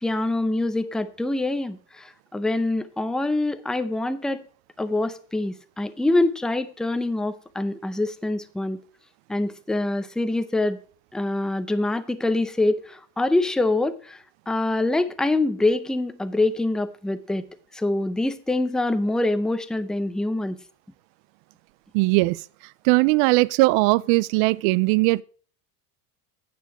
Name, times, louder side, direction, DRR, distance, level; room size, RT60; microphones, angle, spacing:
voice 1, 0.0-4.4 4.8-8.8 9.3-10.8 11.1-17.4 17.7-20.6, left 2 dB, ahead, 0.5 m, -25 dB
voice 2, 21.9-22.4 22.8-25.2, right 23 dB, 80° right, 0.5 m, -19 dB
9.3 x 6.9 x 4.7 m
supercardioid pair, 100°, 45 cm